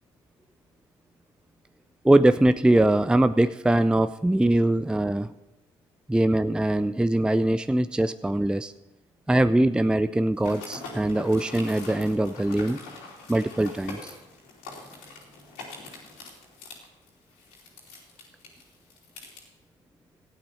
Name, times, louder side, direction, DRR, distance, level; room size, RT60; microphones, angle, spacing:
voice 1, 2.0-5.3 6.1-8.7 9.3-12.8 13.3-14.1, right 1 dB, 5° right, 12 dB, 0.5 m, -22 dB
sound 1, 10.4-19.4, left 3 dB, 85° left, 3.1 m, -43 dB
13.5 x 8.9 x 5.6 m, 0.92 s
hypercardioid pair, 55°, 14 cm